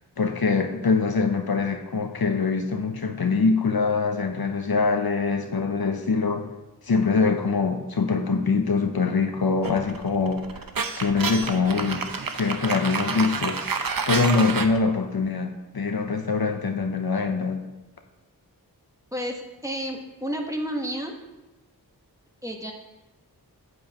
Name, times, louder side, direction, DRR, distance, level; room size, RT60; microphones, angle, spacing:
voice 1, 0.2-6.5 6.8-10.6 11.0-12.1 12.3-13.6 14.1-17.7, left 4 dB, 65° left, 5 dB, 0.9 m, -24 dB
sound 1, 9.6-14.8, right 5 dB, 60° right, 0.8 m, -29 dB
voice 2, 19.1-21.1 22.4-22.7, equal, 10° right, 1 dB, 1.3 m, -31 dB
10.5 x 7.9 x 3.0 m, 1.1 s
wide cardioid pair, 55°, 39 cm